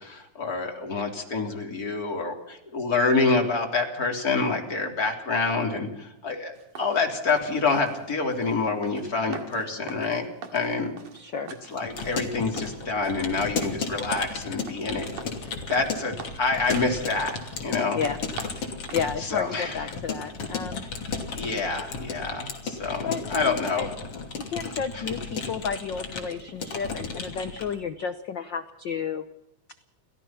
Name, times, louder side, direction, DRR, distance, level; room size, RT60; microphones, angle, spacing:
voice 1, 0.0-10.3 10.5-10.9 11.7-15.1 15.7-17.4 17.6-18.0 19.2-19.8 21.3-23.9 24.9-25.0, left 3 dB, 30° left, 3 dB, 3.7 m, -27 dB
sound 1, 6.5-19.8, right 6 dB, 85° right, 3.5 m, -45 dB
voice 2, 11.1-11.5 17.9-18.2 18.6-20.8 23.0-23.9 24.4-29.2, left 6 dB, 80° left, 10 dB, 1.0 m, -32 dB
Keyboard (musical) / Computer keyboard, 11.7-27.8, left 4 dB, 50° left, 3.8 m, -34 dB
30.0 x 14.5 x 5.9 m, 0.86 s
omnidirectional pair, 3.5 m